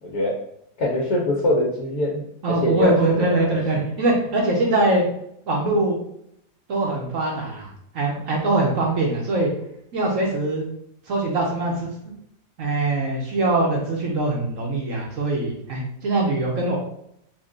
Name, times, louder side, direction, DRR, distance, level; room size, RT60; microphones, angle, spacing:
voice 1, 0.8-2.2 2.5-2.9 3.2-3.6, left 1 dB, 60° left, -3 dB, 1.2 m, -23 dB
voice 2, 2.4-5.0 5.5-6.0 6.7-9.5 9.9-10.6 11.1-11.9 12.6-16.8, right 2 dB, 60° right, -1 dB, 1.1 m, -22 dB
3.7 x 2.4 x 3.7 m, 0.74 s
omnidirectional pair, 1.8 m